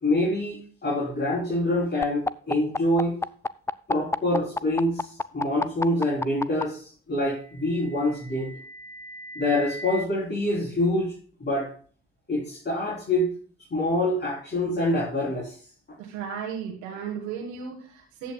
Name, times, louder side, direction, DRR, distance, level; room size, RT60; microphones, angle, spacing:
voice 1, 0.0-3.1 3.9-8.5 9.4-11.1 11.4-11.7 12.3-13.3 13.7-15.5, left 1 dB, 35° left, -4 dB, 3.4 m, -26 dB
sound 1, 2.0-6.6 7.8-10.0, left 3 dB, 10° left, 0.3 m, -30 dB
voice 2, 16.0-18.3, right 7 dB, 75° right, 0 dB, 1.5 m, -35 dB
14.0 x 8.3 x 2.3 m, 0.43 s
hypercardioid pair, 45°, 30 cm